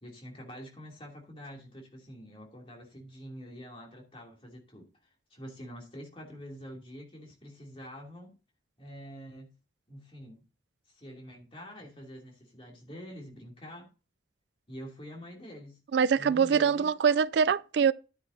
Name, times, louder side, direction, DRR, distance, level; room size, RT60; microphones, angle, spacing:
voice 1, 0.0-4.9 5.3-8.3 8.8-9.5 9.9-10.4 10.9-13.9 14.7-15.8 16.1-16.9, equal, 30° left, 2.7 m, -46 dB
voice 2, 15.9-17.9, right 6 dB, 65° right, 0.3 m, -24 dB
10.5 x 9.4 x 2.7 m
head